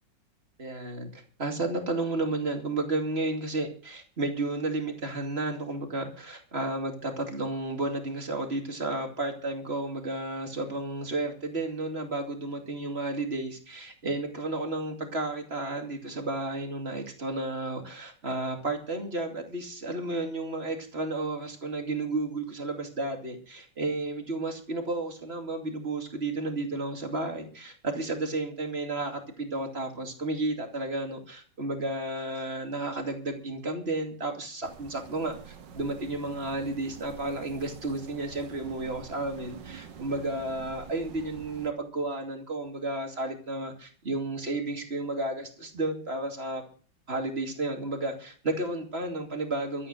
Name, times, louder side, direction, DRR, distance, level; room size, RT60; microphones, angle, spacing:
voice 1, 0.6-46.6 47.1-49.9, right 2 dB, 35° right, 4 dB, 2.8 m, -32 dB
sound 1, 34.6-41.7, right 7 dB, 75° right, 1.9 m, -46 dB
13.5 x 8.8 x 7.8 m, 0.42 s
omnidirectional pair, 2.0 m